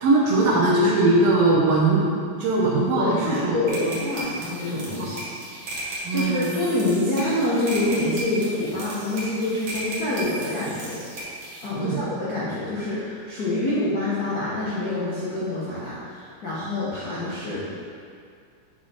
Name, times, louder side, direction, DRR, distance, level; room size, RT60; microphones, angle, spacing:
voice 1, 0.0-2.1 2.4-3.6 5.0-5.1 6.0-6.5 11.8-12.0, right 2 dB, 75° right, -4 dB, 1.5 m, -20 dB
voice 2, 3.0-5.2 5.8-11.0 11.6-17.8, left 1 dB, 75° left, -10 dB, 0.8 m, -26 dB
sound 1, 3.7-11.7, right 1 dB, 55° right, 1.6 m, -35 dB
7.3 x 4.4 x 4.3 m, 2.3 s
omnidirectional pair, 3.6 m